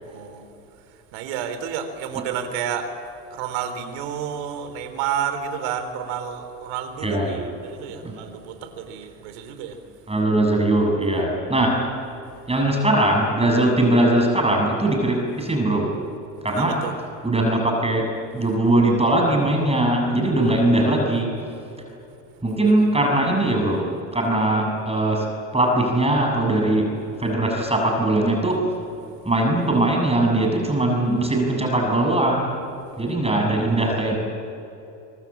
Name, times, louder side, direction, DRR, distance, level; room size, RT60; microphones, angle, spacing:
voice 1, 0.1-0.5 0.8-3.0 3.3-9.8 16.5-17.0 22.6-22.9 29.2-29.3, right 8 dB, 70° right, 9 dB, 3.7 m, -31 dB
voice 2, 7.0-7.5 8.0-8.1 10.1-11.8 12.5-16.0 16.4-16.7 17.2-21.3 22.4-25.3 25.5-26.9 27.2-28.7 29.3-32.5 33.0-34.2, right 1 dB, 15° right, 2 dB, 7.1 m, -20 dB
25.0 x 23.5 x 8.7 m, 2.8 s
hypercardioid pair, 80°, 47 cm